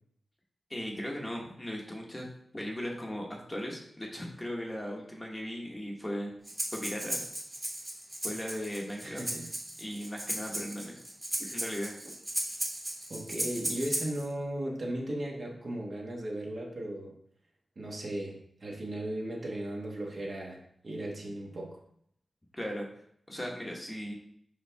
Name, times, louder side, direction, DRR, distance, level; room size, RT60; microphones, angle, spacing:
voice 1, 0.7-2.2 2.5-6.3 6.7-7.2 8.2-9.2 9.8-11.0 11.4-11.9 22.5-22.9 23.3-24.1, equal, 15° left, -1 dB, 1.2 m, -37 dB
Breathing, 6.5-14.3, right 1 dB, 20° right, 1.5 m, -36 dB
voice 2, 9.0-9.5 13.1-17.1 17.7-21.8, right 1 dB, 50° right, -1 dB, 1.4 m, -36 dB
5.5 x 5.3 x 3.4 m, 0.67 s
wide cardioid pair, 115°, 0 cm